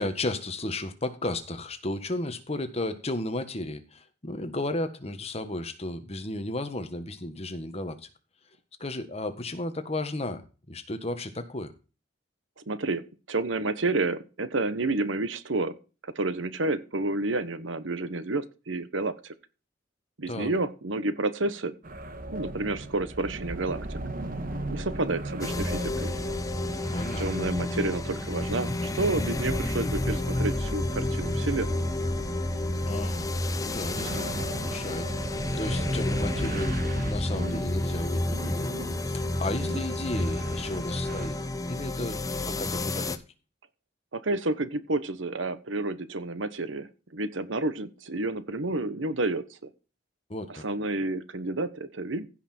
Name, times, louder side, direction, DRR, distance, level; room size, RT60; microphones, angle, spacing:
voice 1, 0.0-8.1 8.8-10.4 10.7-11.7 20.3-20.5 26.9-27.3 32.9-33.3 33.5-38.8 39.0-43.2 50.3-50.6, left 2 dB, 35° left, 1.5 m, -34 dB
voice 2, 12.7-15.8 16.1-19.3 20.2-21.7 22.3-24.0 24.7-26.1 27.2-31.9 44.1-49.4 50.5-52.3, right 2 dB, 85° right, 1.2 m, -30 dB
sound 1, 21.8-41.3, right 1 dB, 45° right, 1.6 m, -38 dB
sound 2, 25.4-43.2, left 1 dB, 20° left, 0.8 m, -30 dB
15.5 x 5.9 x 4.4 m
head